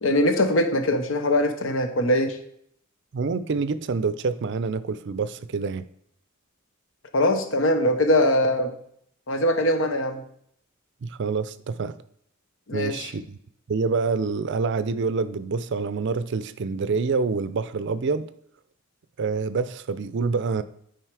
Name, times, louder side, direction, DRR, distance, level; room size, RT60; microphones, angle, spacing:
voice 1, 0.0-2.4 7.1-8.7 9.3-10.2 12.7-13.1, left 1 dB, 65° left, 0.9 m, -22 dB
voice 2, 3.1-5.9 11.0-12.0 12.7-13.4 13.7-18.3 19.2-20.6, right 4 dB, 60° right, 0.4 m, -27 dB
9.1 x 5.0 x 4.7 m
head